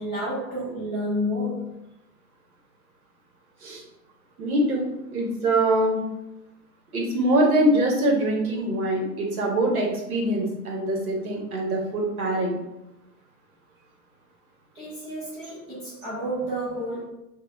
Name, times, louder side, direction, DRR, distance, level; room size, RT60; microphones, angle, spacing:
voice 1, 0.0-1.8 14.7-17.1, equal, 10° right, -12 dB, 1.0 m, -30 dB
voice 2, 4.4-6.0 6.9-12.5, right 1 dB, 60° right, 0 dB, 1.3 m, -23 dB
5.5 x 2.4 x 2.4 m, 0.90 s
figure-of-eight pair, 125°, 49 cm